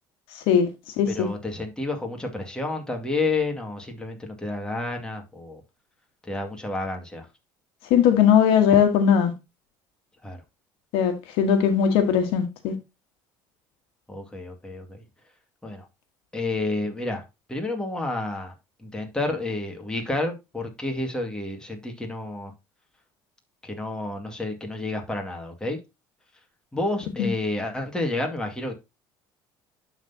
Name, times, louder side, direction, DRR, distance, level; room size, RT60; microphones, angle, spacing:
voice 1, 0.3-0.7 1.0-1.3 7.9-9.3 10.9-12.7 27.2-27.3, left 8 dB, 75° left, 1.4 m, -19 dB
voice 2, 1.1-5.6 6.2-7.3 10.2-10.4 14.1-15.0 15.6-15.9 16.3-17.2 17.5-18.5 18.8-22.5 23.6-25.8 26.7-28.7, left 2 dB, 10° left, 2.0 m, -30 dB
11.5 x 4.0 x 2.8 m
supercardioid pair, 95°, 9 cm